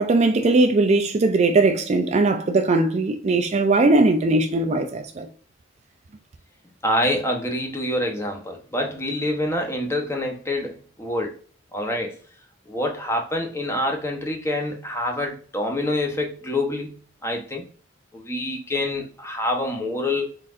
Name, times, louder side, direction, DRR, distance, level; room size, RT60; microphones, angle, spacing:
voice 1, 0.0-5.3, right 2 dB, 35° right, 0.4 m, -19 dB
voice 2, 6.8-11.3 11.7-12.2 12.7-17.0 17.2-17.6 18.1-20.3, left 1 dB, 15° left, 0.8 m, -26 dB
4.0 x 3.9 x 2.4 m
head